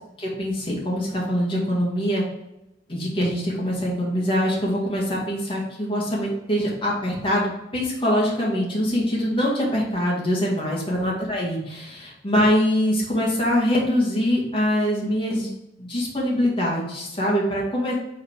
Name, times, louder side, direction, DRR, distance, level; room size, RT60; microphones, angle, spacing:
voice 1, 0.2-2.2 2.9-15.5 15.8-17.9, equal, 30° left, -5 dB, 1.9 m, -23 dB
5.1 x 4.2 x 4.6 m, 0.89 s
head